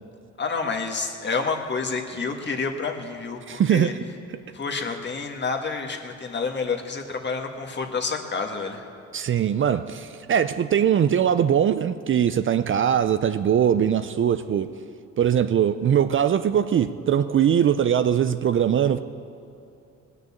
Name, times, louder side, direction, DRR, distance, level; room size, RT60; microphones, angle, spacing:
voice 1, 0.4-3.9 4.5-8.8, left 4 dB, 35° left, 3 dB, 1.7 m, -29 dB
voice 2, 3.5-4.0 9.1-14.7 15.2-19.0, right 9 dB, 40° right, 11 dB, 0.5 m, -21 dB
19.0 x 6.6 x 8.5 m, 2.6 s
cardioid pair, 90°, 30 cm